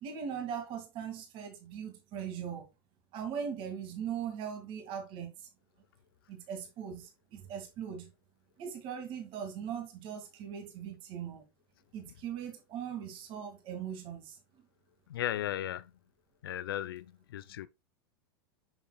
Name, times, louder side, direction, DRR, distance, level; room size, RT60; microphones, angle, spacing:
voice 1, 0.0-2.7 3.1-5.5 6.3-8.1 8.6-11.4 11.9-14.4, right 8 dB, 45° right, 2.2 m, -40 dB
voice 2, 15.1-15.9 16.4-17.7, left 12 dB, 85° left, 0.5 m, -36 dB
7.9 x 6.7 x 2.3 m
hypercardioid pair, 110°, 12 cm